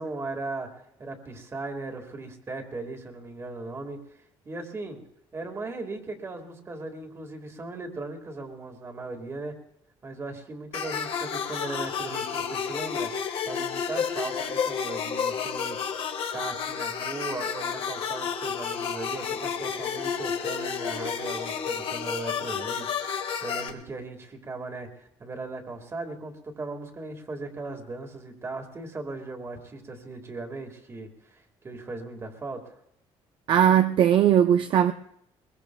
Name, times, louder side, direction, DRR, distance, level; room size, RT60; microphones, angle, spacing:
voice 1, 0.0-5.0 5.3-9.6 10.0-13.1 13.5-15.9 16.3-32.8, right 3 dB, 25° right, 1.9 m, -38 dB
sound 1, 10.7-23.7, left 7 dB, 60° left, 1.5 m, -31 dB
voice 2, 33.5-34.9, right 9 dB, 50° right, 0.4 m, -19 dB
22.0 x 22.0 x 2.3 m
cardioid pair, 145°, 11 cm